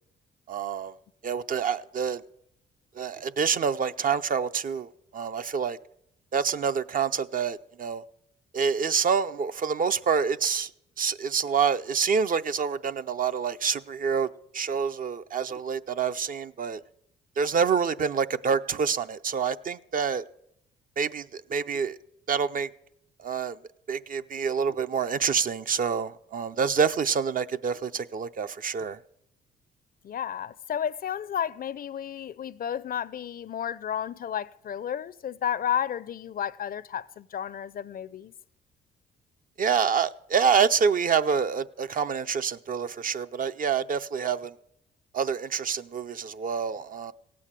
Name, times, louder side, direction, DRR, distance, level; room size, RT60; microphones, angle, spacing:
voice 1, 0.5-0.9 1.2-2.2 2.9-5.8 6.3-8.0 8.5-10.7 11.0-16.8 17.4-20.2 21.0-22.0 22.3-22.7 23.2-23.6 23.9-29.0 39.6-44.5 45.1-47.1, right 6 dB, 45° right, 0.5 m, -27 dB
voice 2, 30.0-38.3, left 9 dB, 45° left, 0.5 m, -32 dB
16.5 x 8.4 x 7.4 m
cardioid pair, 90°, 20 cm